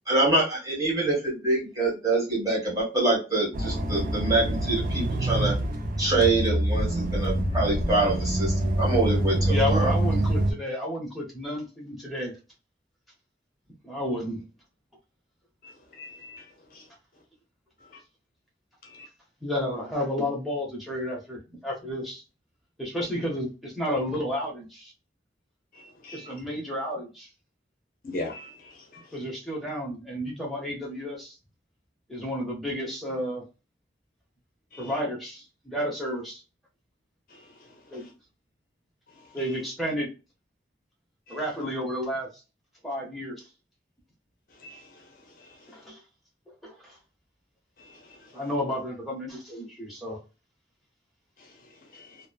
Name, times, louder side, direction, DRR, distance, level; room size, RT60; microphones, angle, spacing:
voice 1, 0.1-5.5 6.0-9.9, right 2 dB, 20° right, 1.3 m, -25 dB
sound 1, 3.5-10.5, right 1 dB, 50° right, 0.4 m, -26 dB
voice 2, 9.5-12.3 13.8-14.5 19.4-22.2 22.8-24.9 26.1-27.3 29.1-31.3 32.1-33.4 34.8-36.4 37.9-38.1 39.3-40.1 41.3-42.3 42.8-43.4 45.7-46.0 46.6-47.0 48.3-50.2, left 1 dB, ahead, 0.8 m, -31 dB
voice 3, 16.0-16.4 25.8-26.3 28.0-28.5 28.9-29.0 34.7-34.8 41.3-41.4 44.6-44.8 51.9-52.1, left 2 dB, 50° left, 0.6 m, -38 dB
3.0 x 2.0 x 2.2 m
head